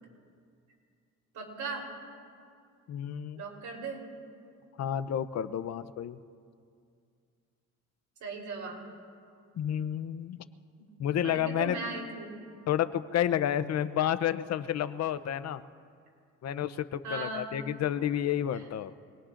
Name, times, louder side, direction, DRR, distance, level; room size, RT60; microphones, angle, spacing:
voice 1, 1.3-1.9 3.3-4.0 8.2-8.8 10.8-10.9 11.2-12.3 17.0-17.5 18.5-18.6, right 3 dB, 70° right, -1 dB, 3.7 m, -38 dB
voice 2, 2.9-3.4 4.8-6.2 9.6-10.4 11.0-11.8 12.7-15.6 16.4-18.9, left 10 dB, 60° left, 13 dB, 0.6 m, -30 dB
25.5 x 20.0 x 2.5 m, 2.3 s
cardioid pair, 90°, 30 cm